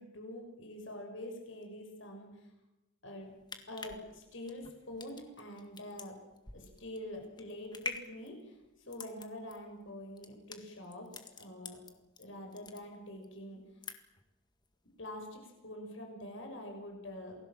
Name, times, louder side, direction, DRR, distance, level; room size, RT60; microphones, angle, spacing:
voice 1, 0.0-2.3 3.0-3.3 3.7-6.2 6.5-8.5 8.9-11.8 12.2-13.6 15.0-17.4, left 1 dB, 70° left, 3 dB, 6.4 m, -45 dB
sound 1, 3.2-12.2 12.5-13.3 13.6-14.3 14.6-14.7, left 4 dB, 20° left, 1.9 m, -46 dB
28.5 x 20.5 x 7.6 m, 1.0 s
head